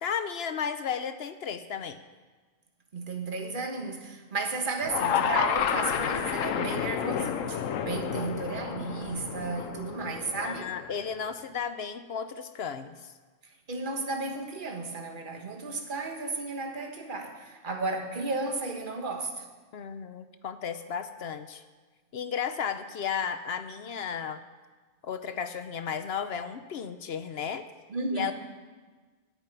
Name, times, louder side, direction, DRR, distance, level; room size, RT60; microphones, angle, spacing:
voice 1, 0.0-2.0 10.4-13.1 19.7-21.6 22.1-24.4 25.0-27.6 28.1-28.3, left 7 dB, 60° left, 10 dB, 0.8 m, -34 dB
voice 2, 2.9-10.7 13.7-19.5 27.9-28.3, right 3 dB, 40° right, 3 dB, 1.5 m, -34 dB
sound 1, 4.8-11.1, left 8 dB, 85° left, 1.1 m, -30 dB
9.9 x 8.9 x 9.0 m, 1.4 s
omnidirectional pair, 1.3 m